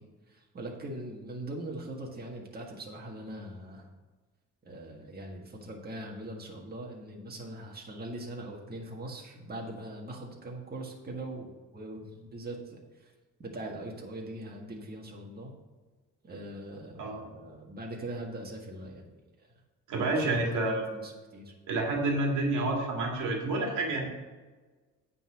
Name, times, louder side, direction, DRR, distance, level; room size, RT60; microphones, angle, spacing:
voice 1, 0.3-3.9 4.6-13.1 13.4-15.5 16.2-19.1 20.1-21.5, right 1 dB, 30° right, 0 dB, 1.7 m, -41 dB
voice 2, 19.9-20.8 21.7-24.0, right 2 dB, 85° right, 1 dB, 1.9 m, -29 dB
9.0 x 4.2 x 6.2 m, 1.3 s
cardioid pair, 90°, 30 cm